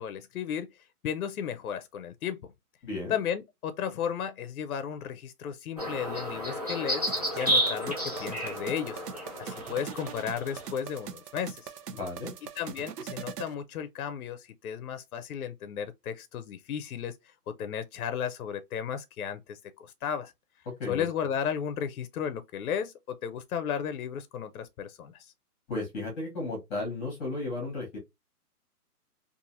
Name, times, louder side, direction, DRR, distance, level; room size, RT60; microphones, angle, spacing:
voice 1, 0.0-2.5 3.1-7.1 7.4-9.0 9.4-11.7 12.6-20.3 20.9-25.3, left 8 dB, 65° left, 0.6 m, -34 dB
voice 2, 2.8-3.2 11.9-12.3 20.8-21.1 25.7-28.0, left 2 dB, 15° left, 0.9 m, -34 dB
sound 1, 5.8-10.7, equal, 30° right, 0.3 m, -31 dB
sound 2, 7.1-13.5, right 7 dB, 85° right, 0.7 m, -42 dB
2.8 x 2.5 x 2.4 m
hypercardioid pair, 155°, 47 cm